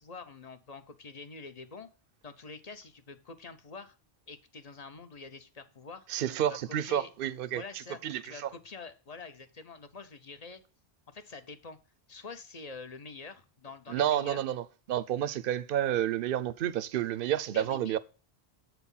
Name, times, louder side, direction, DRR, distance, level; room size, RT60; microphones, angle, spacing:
voice 1, 0.0-1.9 2.2-3.9 4.3-6.1 6.4-7.1 7.5-10.6 11.1-11.8 12.1-14.4 17.5-17.9, left 4 dB, 40° left, 0.9 m, -46 dB
voice 2, 6.1-7.6 8.0-8.5 13.9-18.0, right 11 dB, 65° right, 0.7 m, -30 dB
8.0 x 4.4 x 5.4 m
omnidirectional pair, 1.0 m